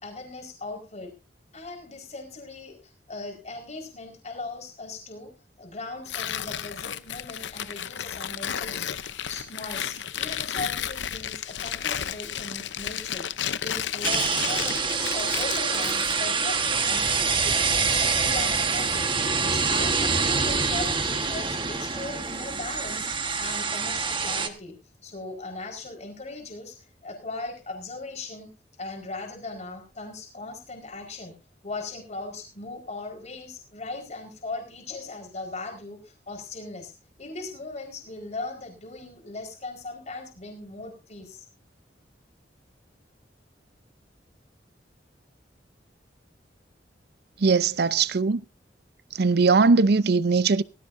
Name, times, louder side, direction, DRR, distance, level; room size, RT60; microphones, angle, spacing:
voice 1, 0.0-1.1 1.5-2.8 3.1-5.3 5.6-8.9 9.3-13.3 13.6-24.8 25.0-26.8 27.0-28.5 28.8-31.3 31.6-36.9 37.2-41.4, left 3 dB, 40° left, 4.6 m, -38 dB
Tearing, 6.1-16.2, left 9 dB, 90° left, 0.7 m, -33 dB
sound 1, 14.0-24.5, right 5 dB, 30° right, 1.4 m, -25 dB
voice 2, 47.4-48.4 49.1-50.6, right 4 dB, 60° right, 0.6 m, -20 dB
18.0 x 15.0 x 2.6 m
head